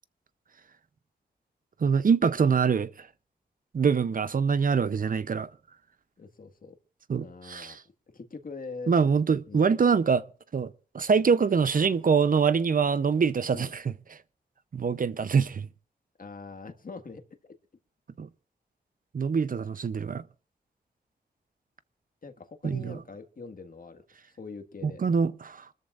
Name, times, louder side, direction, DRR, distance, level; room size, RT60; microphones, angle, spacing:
voice 1, 1.8-3.1 3.7-5.5 7.1-7.8 8.9-10.2 10.5-13.9 14.7-15.7 18.2-18.3 19.1-20.2 22.6-23.0 24.8-25.7, right 6 dB, 50° right, 0.7 m, -24 dB
voice 2, 6.2-6.8 7.2-7.8 8.1-8.9 9.5-9.7 13.5-13.7 16.2-17.2 22.2-24.0 24.4-25.0, left 4 dB, 55° left, 1.7 m, -43 dB
26.5 x 13.5 x 2.5 m
wide cardioid pair, 75°, 17 cm